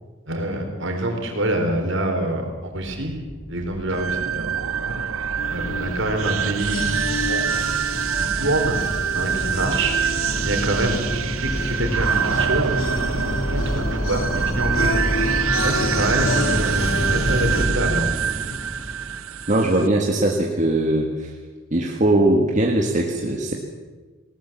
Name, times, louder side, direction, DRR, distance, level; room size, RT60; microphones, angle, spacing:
voice 1, 0.3-3.2 3.5-4.5 4.8-4.9 5.5-6.9 7.3-7.4 8.2-8.8 9.1-11.0 11.4-12.8 13.5-15.0 15.6-18.1, right 1 dB, 60° right, 3 dB, 4.0 m, -26 dB
sound 1, 2.8-19.8, equal, 30° left, 4.8 m, -29 dB
sound 2, 3.9-19.9, right 8 dB, 80° right, 0.6 m, -26 dB
sound 3, 5.4-17.7, left 3 dB, 75° left, 1.6 m, -32 dB
voice 2, 19.5-21.3 21.7-23.5, right 1 dB, 35° right, 0 dB, 1.7 m, -20 dB
19.0 x 18.5 x 7.4 m, 1.3 s
head